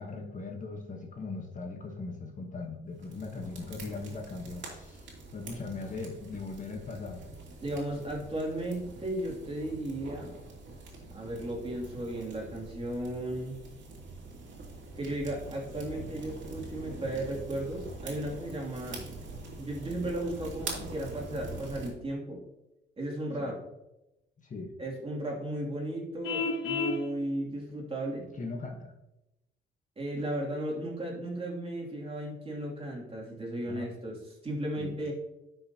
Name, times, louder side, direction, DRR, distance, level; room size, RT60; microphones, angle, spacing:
voice 1, 0.0-7.2 23.4-23.5 24.4-24.7 28.3-28.9 33.7-33.9 34.8-34.9, left 3 dB, 40° left, 2 dB, 1.2 m, -39 dB
sound 1, 3.0-21.9, right 3 dB, 70° right, 2.7 m, -44 dB
voice 2, 7.6-10.3 11.1-13.6 14.9-19.0 19.6-22.4 23.0-23.6 24.8-28.3 30.0-35.1, right 1 dB, 30° right, -3 dB, 2.7 m, -35 dB
Vehicle horn car horn honking, 26.2-27.0, left 3 dB, 90° left, 1.1 m, -30 dB
11.0 x 5.9 x 2.9 m, 0.94 s
cardioid pair, 90°, 20 cm